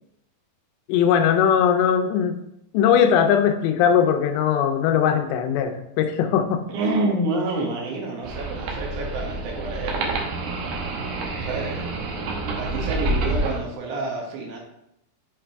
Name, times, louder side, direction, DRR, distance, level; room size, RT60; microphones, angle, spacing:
voice 1, 0.9-2.4 2.7-6.6, left 8 dB, 85° left, 7 dB, 2.8 m, -20 dB
voice 2, 6.7-10.3 11.4-12.0 12.6-14.6, right 2 dB, 65° right, -1 dB, 2.0 m, -28 dB
sound 1, 8.2-13.6, right 2 dB, 80° right, 1.7 m, -28 dB
7.1 x 4.9 x 3.4 m, 0.79 s
omnidirectional pair, 4.9 m